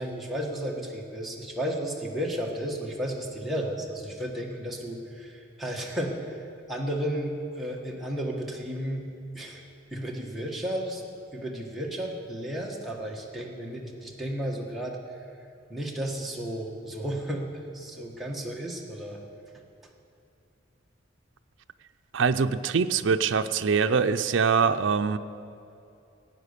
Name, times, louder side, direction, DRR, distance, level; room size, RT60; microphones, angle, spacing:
voice 1, 0.0-9.1 9.3-9.6 9.9-11.0 11.3-15.0 15.7-19.2, equal, ahead, -3 dB, 1.4 m, -33 dB
voice 2, 22.1-25.2, right 5 dB, 65° right, 9 dB, 0.5 m, -23 dB
16.0 x 9.2 x 6.7 m, 2.6 s
head